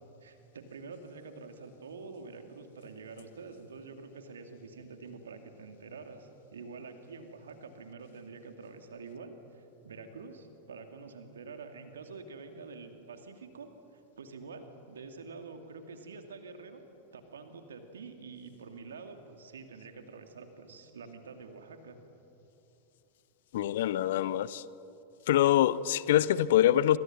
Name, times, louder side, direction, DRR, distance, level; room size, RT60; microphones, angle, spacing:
voice 1, 0.2-16.8 17.1-22.0, right 4 dB, 65° right, 2.6 m, -47 dB
voice 2, 23.5-24.6 25.3-27.0, left 12 dB, 55° left, 0.7 m, -25 dB
28.5 x 26.0 x 6.2 m
figure-of-eight pair, 90°, 0 cm